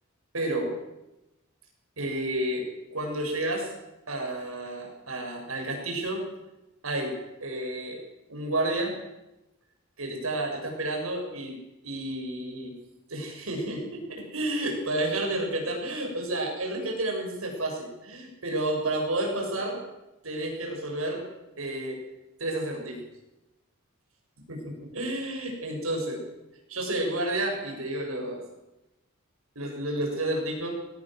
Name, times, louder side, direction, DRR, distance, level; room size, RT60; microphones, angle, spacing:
voice 1, 0.3-0.7 2.0-2.6 2.9-3.7 4.1-6.2 6.8-8.0 8.3-9.0 10.0-12.7 13.1-19.8 20.2-21.3 21.6-22.0 22.4-23.0 24.5-26.2 26.7-28.4 29.6-30.7, right 1 dB, 85° right, 1 dB, 7.6 m, -31 dB
22.0 x 17.5 x 7.8 m, 0.97 s
head